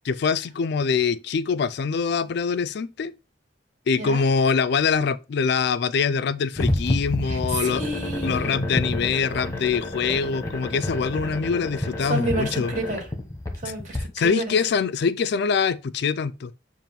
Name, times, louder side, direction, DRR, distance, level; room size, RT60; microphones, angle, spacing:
voice 1, 0.1-3.1 3.9-7.8 8.2-12.7 14.2-16.5, left 5 dB, 60° left, 0.4 m, -24 dB
sound 1, 6.6-14.0, left 1 dB, 15° left, 1.1 m, -29 dB
voice 2, 7.2-8.5 12.0-13.0 13.5-14.6, right 2 dB, 40° right, 2.1 m, -30 dB
7.4 x 2.6 x 5.2 m
head